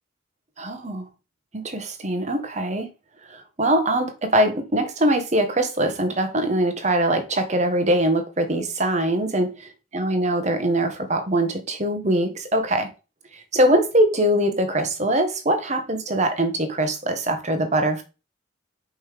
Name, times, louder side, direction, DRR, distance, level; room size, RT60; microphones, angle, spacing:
voice 1, 0.6-1.1 1.5-2.9 3.3-9.5 9.9-12.9 13.3-18.0, right 1 dB, 35° right, 1.4 m, -22 dB
5.5 x 5.4 x 5.0 m
head